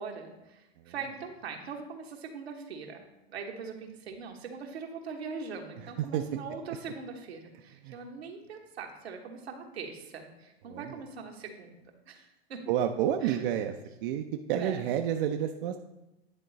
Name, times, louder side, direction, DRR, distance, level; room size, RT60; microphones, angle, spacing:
voice 1, 0.0-12.7 13.2-13.4 14.5-14.8, right 5 dB, 85° right, 2 dB, 1.2 m, -42 dB
voice 2, 10.7-11.0 12.7-13.7 14.0-15.8, right 10 dB, 60° right, 5 dB, 0.6 m, -29 dB
10.0 x 3.8 x 4.0 m, 0.95 s
hypercardioid pair, 100°, 31 cm